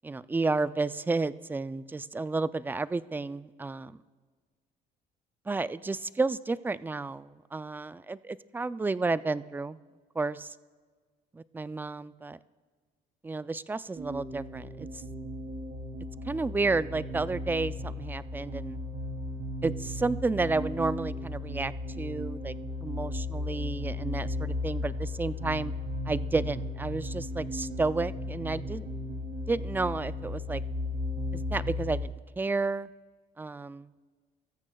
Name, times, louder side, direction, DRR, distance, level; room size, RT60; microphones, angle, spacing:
voice 1, 0.0-4.0 5.5-9.8 10.2-10.5 11.5-12.4 13.2-15.0 16.3-18.8 19.6-22.5 22.8-25.7 26.1-28.9 29.5-30.6 31.5-32.9 33.4-33.9, right 3 dB, 10° right, 15 dB, 0.3 m, -31 dB
sound 1, 14.0-32.0, left 2 dB, 70° right, 2.6 m, -35 dB
24.0 x 14.0 x 2.3 m, 1.5 s
cardioid pair, 110°, 17 cm